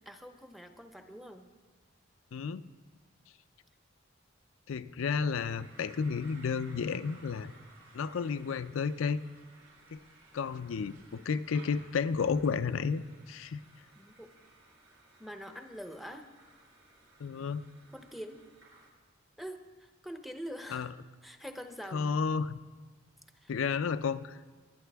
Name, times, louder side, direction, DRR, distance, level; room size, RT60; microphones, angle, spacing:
voice 1, 0.1-1.5 14.0-14.3 15.2-16.3 17.9-18.4 19.4-20.9 21.2-22.1 23.4-23.5, equal, ahead, 6 dB, 0.6 m, -44 dB
voice 2, 2.3-2.6 4.7-7.5 7.9-9.2 9.9-10.0 10.3-13.6 17.2-17.6 20.7-20.9 21.9-22.6 23.5-24.4, left 5 dB, 90° left, 13 dB, 0.4 m, -32 dB
sound 1, 5.4-18.9, right 2 dB, 70° right, 3.3 m, -58 dB
21.5 x 9.1 x 3.5 m, 1.4 s
head